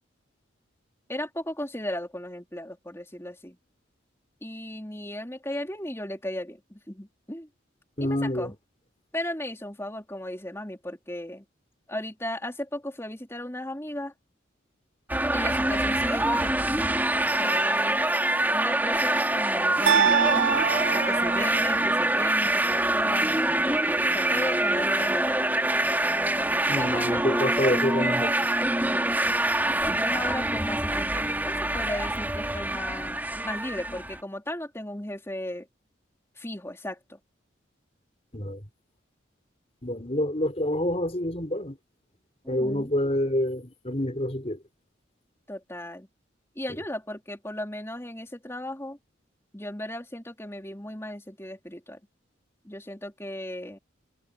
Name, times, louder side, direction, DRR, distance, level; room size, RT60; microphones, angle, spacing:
voice 1, 1.1-3.6 4.4-7.5 8.0-8.5 9.1-11.4 11.9-14.1 15.3-16.9 17.3-18.0 18.5-20.4 20.9-25.5 26.8-27.7 28.8-29.1 29.8-35.7 36.4-37.2 42.4-42.9 45.5-46.1 46.6-49.0 49.5-52.0 52.6-53.8, left 1 dB, 15° left, 4.1 m, -36 dB
voice 2, 8.0-8.5 26.7-28.3 38.3-38.6 39.8-41.8 42.5-44.6, left 1 dB, 30° left, 4.1 m, -27 dB
sound 1, 15.1-34.2, right 1 dB, 10° right, 3.0 m, -25 dB
sound 2, 19.9-22.0, right 7 dB, 90° right, 2.6 m, -24 dB
head